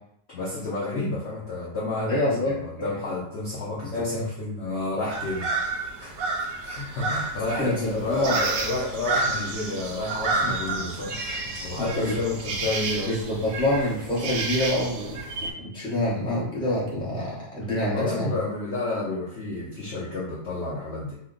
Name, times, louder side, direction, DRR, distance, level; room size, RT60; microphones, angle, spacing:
voice 1, 0.3-6.3 6.6-13.2 17.9-21.2, left 2 dB, 65° left, -5 dB, 0.6 m, -31 dB
voice 2, 2.1-2.9 3.9-4.2 6.4-6.5 7.6-8.4 10.4-10.5 11.8-12.2 13.0-15.2 15.5-18.3, left 1 dB, 5° left, -7 dB, 0.5 m, -26 dB
sound 1, 5.1-15.5, right 3 dB, 70° right, 0.9 m, -30 dB
2.8 x 2.1 x 3.7 m, 0.73 s
omnidirectional pair, 1.8 m